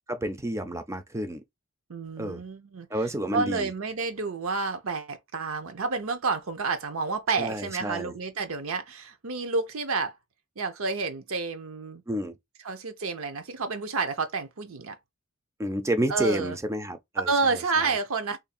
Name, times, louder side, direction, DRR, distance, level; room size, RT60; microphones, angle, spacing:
voice 1, 0.1-1.4 2.2-2.4 2.9-3.7 7.4-8.1 12.1-12.4 15.6-17.3 17.9-18.0, right 1 dB, 15° right, 0.5 m, -30 dB
voice 2, 1.9-2.9 3.3-10.2 10.6-12.0 12.6-15.0 16.1-16.6 17.3-18.4, right 4 dB, 65° right, 0.7 m, -29 dB
3.2 x 2.6 x 4.1 m
head